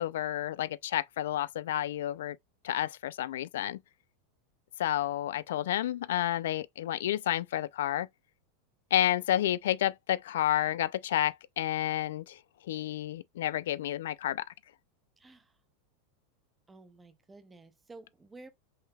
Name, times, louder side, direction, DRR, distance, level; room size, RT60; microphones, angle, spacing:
voice 1, 0.0-2.4 2.6-3.8 4.8-8.1 8.9-12.4 12.7-14.4, left 12 dB, 80° left, 0.4 m, -30 dB
voice 2, 15.2-15.6 16.7-18.5, right 3 dB, 10° right, 0.5 m, -52 dB
5.3 x 3.9 x 2.3 m
supercardioid pair, 180°, 0 cm